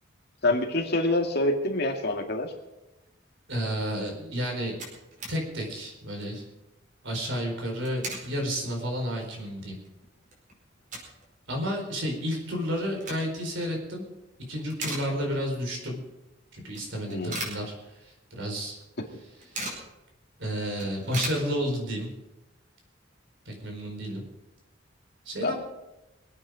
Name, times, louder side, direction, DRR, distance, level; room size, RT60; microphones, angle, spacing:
voice 1, 0.4-2.5 17.1-17.5 25.4-25.6, left 2 dB, 55° left, 3 dB, 2.1 m, -26 dB
voice 2, 3.5-4.8 5.3-6.4 7.0-9.8 11.5-14.0 14.5-16.0 16.5-18.8 20.4-22.1 23.4-24.2 25.2-25.6, equal, 70° right, 1 dB, 4.7 m, -31 dB
sound 1, 4.8-5.4 5.8-5.9 6.1-6.4 7.6-8.3 8.8-8.9 9.4-9.5 9.8-11.3 11.6-11.7 12.7-13.5 14.0-14.3 14.6-15.6 15.9-16.0 16.7-18.2 18.5-18.6 18.9-19.9 20.3-20.4 20.6-22.0, right 2 dB, 45° right, 4.8 m, -38 dB
24.0 x 9.0 x 5.0 m, 0.99 s
head